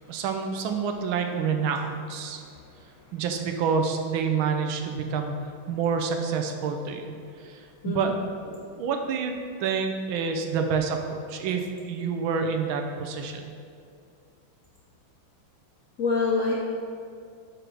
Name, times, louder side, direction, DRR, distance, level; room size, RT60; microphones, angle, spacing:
voice 1, 0.1-2.4 3.1-5.4 5.7-7.1 7.4-8.1 8.4-9.3 9.6-13.5, right 5 dB, 80° right, 5 dB, 1.5 m, -28 dB
voice 2, 16.0-16.5, left 4 dB, 80° left, -3 dB, 0.7 m, -26 dB
5.0 x 4.8 x 6.2 m, 2.3 s
omnidirectional pair, 2.2 m